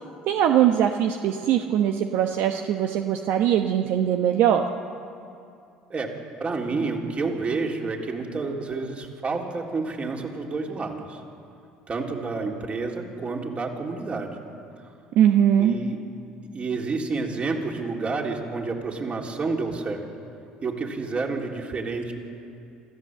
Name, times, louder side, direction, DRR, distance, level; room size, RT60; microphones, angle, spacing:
voice 1, 0.3-4.6 15.2-15.7, right 10 dB, 65° right, 5 dB, 1.1 m, -21 dB
voice 2, 6.4-11.2 11.9-14.4 15.6-16.0 16.5-20.0 20.6-22.1, right 3 dB, 35° right, 1 dB, 3.7 m, -29 dB
26.5 x 14.5 x 7.8 m, 2.5 s
hypercardioid pair, 70°, 4 cm